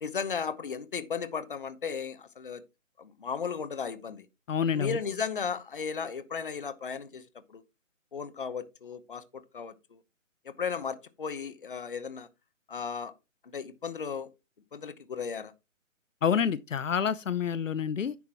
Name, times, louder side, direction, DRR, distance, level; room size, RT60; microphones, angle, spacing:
voice 1, 0.0-2.6 3.0-4.3 4.7-7.2 7.5-7.6 8.1-9.2 9.5-9.7 10.5-12.3 12.7-13.1 13.5-14.3 14.7-15.5, left 6 dB, 40° left, 1.0 m, -35 dB
voice 2, 4.5-5.0 16.2-18.2, left 7 dB, 70° left, 0.8 m, -28 dB
10.5 x 8.2 x 2.9 m
hypercardioid pair, 175°, 40 cm